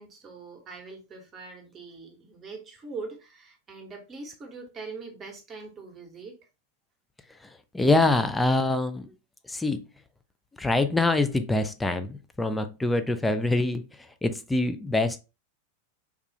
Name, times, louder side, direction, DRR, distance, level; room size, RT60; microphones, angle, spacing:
voice 1, 0.0-6.4, right 4 dB, 25° right, 3 dB, 1.0 m, -42 dB
voice 2, 7.7-9.1 9.5-9.8 10.6-13.8 14.2-15.2, left 2 dB, 5° left, 9 dB, 0.4 m, -24 dB
3.5 x 2.3 x 2.8 m, 0.29 s
figure-of-eight pair, 90°, 0 cm